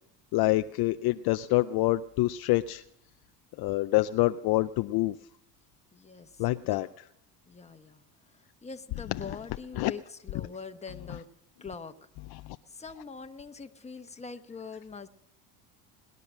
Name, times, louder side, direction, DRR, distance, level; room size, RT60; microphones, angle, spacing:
voice 1, 0.3-2.8 3.6-5.1 6.4-6.9 9.8-9.9, left 18 dB, 50° left, 10 dB, 0.5 m, -26 dB
voice 2, 5.9-6.4 6.7-6.9 7.5-8.0 8.3-11.3 11.6-12.1 12.7-15.1, left 5 dB, 15° left, 7 dB, 1.2 m, -43 dB
19.5 x 10.5 x 6.3 m, 0.76 s
supercardioid pair, 95°, 47 cm